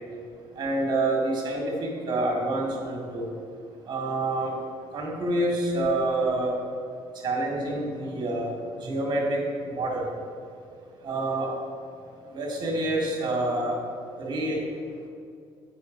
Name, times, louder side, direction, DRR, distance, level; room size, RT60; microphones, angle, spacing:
voice 1, 0.5-3.3 3.9-4.6 4.9-6.5 7.1-10.1 11.0-11.5 12.2-13.8 14.2-14.6, right 2 dB, 50° right, -1 dB, 1.9 m, -27 dB
7.7 x 5.9 x 5.1 m, 2.3 s
cardioid pair, 100°, 9 cm